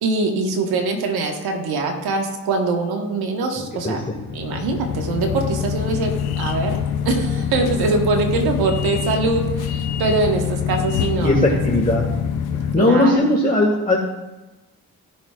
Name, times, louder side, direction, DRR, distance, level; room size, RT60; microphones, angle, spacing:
voice 1, 0.0-4.0 4.3-6.8 7.0-11.6 12.8-13.3, right 3 dB, 80° right, 2 dB, 1.6 m, -23 dB
sound 1, 4.1-12.8, left 8 dB, 85° left, 0.7 m, -25 dB
voice 2, 11.2-12.1 12.7-14.0, left 1 dB, 20° left, -3 dB, 2.0 m, -17 dB
17.0 x 6.0 x 2.5 m, 1.1 s
hypercardioid pair, 40°, 37 cm